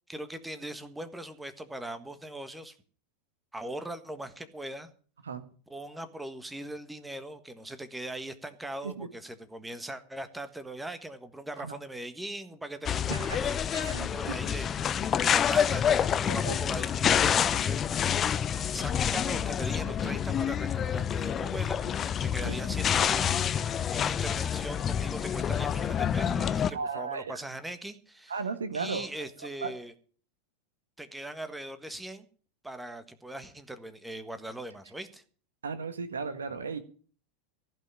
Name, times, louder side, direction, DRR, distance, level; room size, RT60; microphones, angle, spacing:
voice 1, 0.1-2.8 3.5-4.9 5.7-17.8 18.7-21.8 22.2-23.4 23.9-28.3 28.7-29.9 31.0-32.3 32.6-35.2, right 1 dB, 5° right, 10 dB, 1.5 m, -40 dB
sound 1, 12.9-26.7, left 8 dB, 30° left, 0.6 m, -28 dB
voice 2, 13.1-13.4 13.7-14.3 16.3-16.6 22.4-22.6 26.7-27.4 28.3-29.3 29.6-29.7 35.6-36.8, right 5 dB, 75° right, 10 dB, 1.4 m, -35 dB
15.5 x 5.6 x 9.9 m, 0.43 s
figure-of-eight pair, 90°, 0 cm